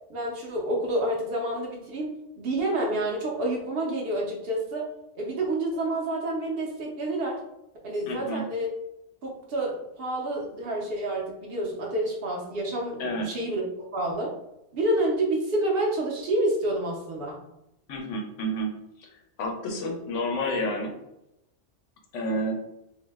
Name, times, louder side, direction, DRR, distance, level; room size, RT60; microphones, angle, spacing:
voice 1, 0.1-2.1 2.4-4.8 5.1-7.4 7.8-8.7 9.2-13.6 13.9-14.3 14.7-17.4, right 1 dB, 60° right, -1 dB, 0.8 m, -28 dB
voice 2, 8.1-8.4 13.0-13.3 17.9-20.9 22.1-22.5, equal, 85° left, 2 dB, 1.0 m, -30 dB
2.6 x 2.0 x 3.3 m, 0.86 s
omnidirectional pair, 1.2 m